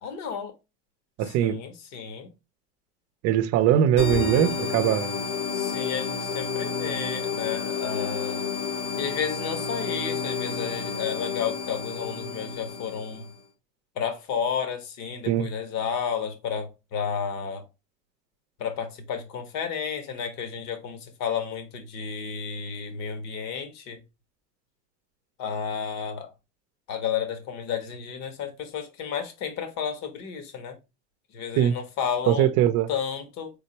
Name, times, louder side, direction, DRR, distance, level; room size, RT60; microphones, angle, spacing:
voice 1, 0.0-0.6 1.2-2.3 5.5-8.5 9.0-13.3 13.9-17.7 18.6-24.0 25.4-26.3 26.9-30.8 31.3-32.5 32.9-33.5, left 7 dB, 55° left, 1.4 m, -32 dB
voice 2, 1.2-1.6 3.2-5.1 15.3-15.5 31.6-31.7 32.3-32.9, right 10 dB, 50° right, 0.6 m, -21 dB
sound 1, 4.0-13.3, left 6 dB, 90° left, 2.4 m, -30 dB
4.3 x 3.7 x 2.8 m
supercardioid pair, 125°, 32 cm